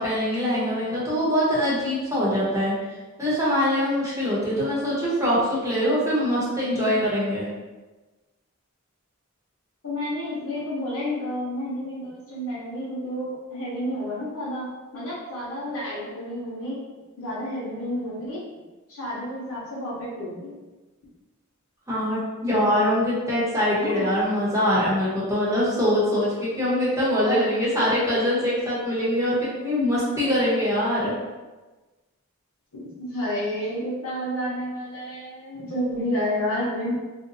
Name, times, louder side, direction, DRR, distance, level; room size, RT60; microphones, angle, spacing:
voice 1, 0.0-2.8 3.2-7.5 21.9-31.2, equal, 15° right, -8 dB, 1.0 m, -23 dB
voice 2, 9.8-14.7 14.9-16.8 17.2-18.4 18.9-20.5 23.8-24.0 27.2-27.5 32.7-36.9, equal, 70° left, -8 dB, 1.0 m, -30 dB
2.7 x 2.2 x 4.0 m, 1.2 s
head